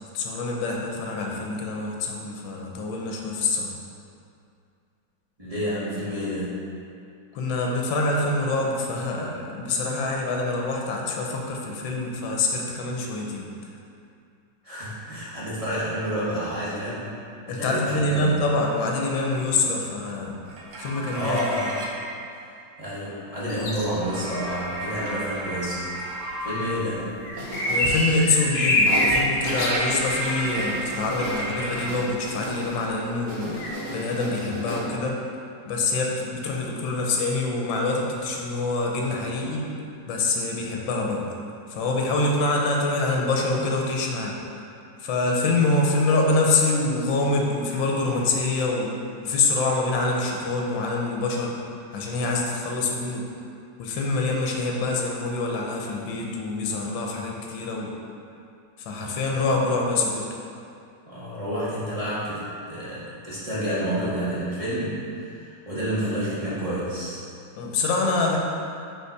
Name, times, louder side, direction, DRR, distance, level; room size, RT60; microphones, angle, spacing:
voice 1, 0.1-3.7 7.3-13.4 17.5-20.4 20.8-21.4 27.7-35.2 35.6-39.7 40.1-41.3 41.8-44.4 45.0-48.9 49.2-51.6 51.9-53.3 53.8-57.9 58.8-60.3 67.6-68.4, left 2 dB, 80° left, 0 dB, 1.5 m, -25 dB
voice 2, 5.4-6.5 14.6-17.1 17.5-18.3 21.1-21.9 22.8-25.9 26.4-27.1 61.1-67.2, equal, 20° right, -10 dB, 1.4 m, -29 dB
sound 1, 20.5-22.1 24.0-26.8 29.4-31.9, right 1 dB, 75° right, 0.5 m, -32 dB
sound 2, 23.5-23.9 26.8-26.9 27.2-30.1 30.5-30.6 31.2-31.3 31.7-31.8 32.1-32.3 33.6-33.7, left 1 dB, 60° left, 1.2 m, -24 dB
sound 3, 27.3-28.5 28.9-32.8 33.3-34.9, right 1 dB, 60° right, 1.9 m, -34 dB
5.5 x 4.1 x 4.7 m, 2.5 s
omnidirectional pair, 2.1 m